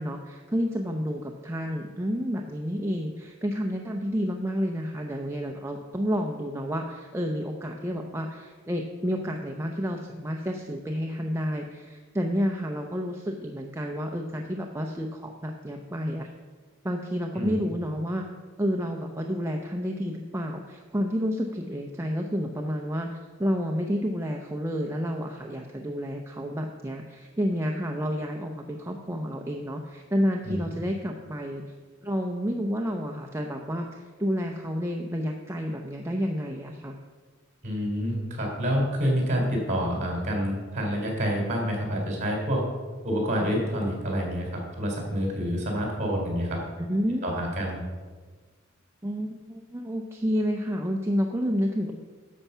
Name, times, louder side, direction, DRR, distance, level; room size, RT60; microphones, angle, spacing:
voice 1, 0.0-16.3 16.8-18.2 18.6-23.1 23.4-31.6 32.0-37.0 46.8-47.3 49.0-51.9, equal, 15° right, 2 dB, 0.6 m, -30 dB
voice 2, 37.6-42.6 43.0-46.6 47.2-47.8, equal, 35° right, 0 dB, 3.5 m, -28 dB
11.0 x 7.2 x 5.6 m, 1.4 s
head